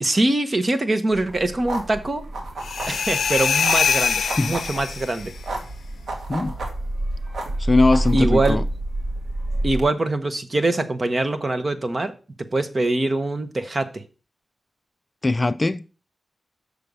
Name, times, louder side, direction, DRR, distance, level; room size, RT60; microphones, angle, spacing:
voice 1, 0.0-2.2 2.9-5.3 8.1-8.6 9.6-12.1 12.5-13.9, right 2 dB, 35° right, 1.2 m, -23 dB
sound 1, 1.1-9.8, right 1 dB, 80° right, 1.9 m, -28 dB
sound 2, 2.6-5.3, left 6 dB, 80° left, 0.5 m, -23 dB
voice 2, 4.1-4.6 6.3-6.5 7.6-8.6 15.2-15.8, left 2 dB, 30° left, 0.4 m, -21 dB
6.7 x 6.6 x 5.4 m
cardioid pair, 70°, 0 cm